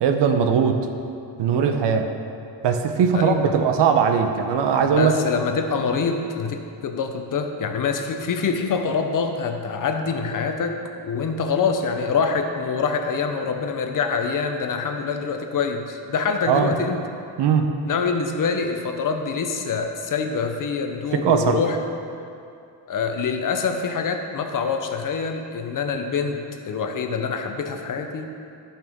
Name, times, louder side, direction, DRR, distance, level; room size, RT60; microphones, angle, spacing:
voice 1, 0.0-0.9 1.4-2.1 2.6-5.1 16.5-16.7 17.4-17.7 21.1-21.6, right 7 dB, 65° right, 6 dB, 0.8 m, -19 dB
voice 2, 3.1-3.5 4.9-17.0 17.9-21.8 22.9-28.3, left 5 dB, 45° left, 5 dB, 0.8 m, -25 dB
13.5 x 5.8 x 3.6 m, 2.5 s
cardioid pair, 125°, 45 cm